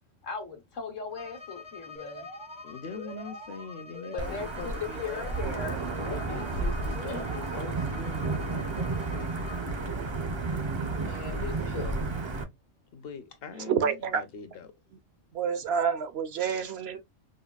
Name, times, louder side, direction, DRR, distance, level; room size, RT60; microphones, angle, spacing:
voice 1, 0.2-2.3 4.1-6.4 7.1-7.2 10.9-12.0, left 5 dB, 85° left, 1.4 m, -38 dB
Bowed string instrument, 1.1-9.7, left 5 dB, 40° left, 0.4 m, -48 dB
Alarm, 1.9-7.9, right 2 dB, 85° right, 2.1 m, -46 dB
voice 2, 2.6-5.6 6.1-9.3 9.7-9.9 12.9-14.7, left 5 dB, 60° left, 0.8 m, -42 dB
Wind / Thunder / Rain, 4.2-12.4, right 3 dB, 40° right, 0.4 m, -32 dB
voice 3, 13.6-14.2 15.3-17.0, right 7 dB, 65° right, 0.7 m, -28 dB
5.0 x 2.3 x 2.3 m
omnidirectional pair, 1.3 m